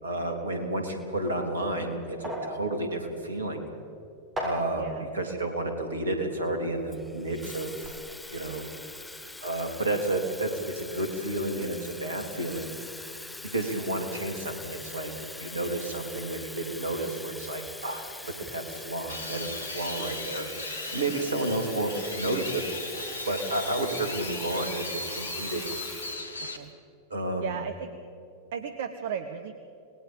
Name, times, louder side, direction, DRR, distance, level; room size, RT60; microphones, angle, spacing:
voice 1, 0.0-3.7 4.4-7.9 8.3-8.6 9.4-12.7 13.5-15.1 15.4-22.6 23.3-25.6 27.1-27.6, right 2 dB, 75° right, 5 dB, 3.1 m, -31 dB
sound 1, 1.2-7.3 7.6-7.9, equal, 15° right, 7.5 m, -40 dB
voice 2, 4.7-5.1 26.4-26.7 27.4-27.9 28.5-29.5, right 7 dB, 55° right, 9 dB, 1.0 m, -35 dB
Water tap faucet / Fill (with liquid), 6.9-26.7, left 2 dB, 5° left, 1.1 m, -43 dB
sound 2, 19.1-26.6, left 2 dB, 75° left, 1.7 m, -37 dB
28.0 x 20.0 x 5.3 m, 2.7 s
figure-of-eight pair, 90°, 0 cm